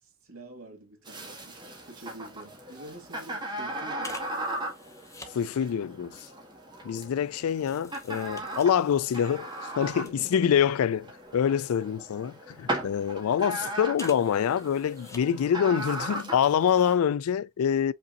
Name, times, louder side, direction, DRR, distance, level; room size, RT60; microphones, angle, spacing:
voice 1, 0.2-4.3 9.8-10.5, right 2 dB, 75° right, 2.1 m, -47 dB
sound 1, 1.1-16.9, right 1 dB, 20° right, 1.4 m, -38 dB
sound 2, 2.4-2.6 2.9-3.1 4.0-5.4 6.2-10.7 11.0-12.3 12.9-13.4 13.9-15.5 15.9-16.0, left 3 dB, 15° left, 0.7 m, -49 dB
voice 2, 5.3-6.1 6.8-9.5 9.8-17.9, left 8 dB, 90° left, 0.3 m, -25 dB
5.3 x 3.9 x 2.5 m
head